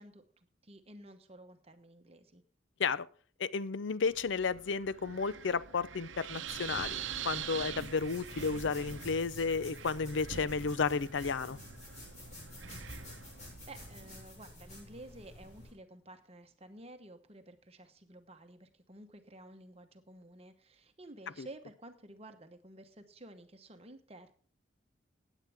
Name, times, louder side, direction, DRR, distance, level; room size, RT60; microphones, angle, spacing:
voice 1, 0.0-2.4 13.3-13.4 13.7-24.3, right 1 dB, 30° right, 7 dB, 1.0 m, -52 dB
voice 2, 3.4-11.6 21.4-21.5, left 5 dB, 70° left, 17 dB, 0.5 m, -33 dB
Wind, 4.0-14.1, right 8 dB, 75° right, 0.7 m, -45 dB
sound 1, 6.5-15.7, left 1 dB, 40° left, 6.7 m, -50 dB
16.5 x 9.1 x 3.5 m, 0.42 s
head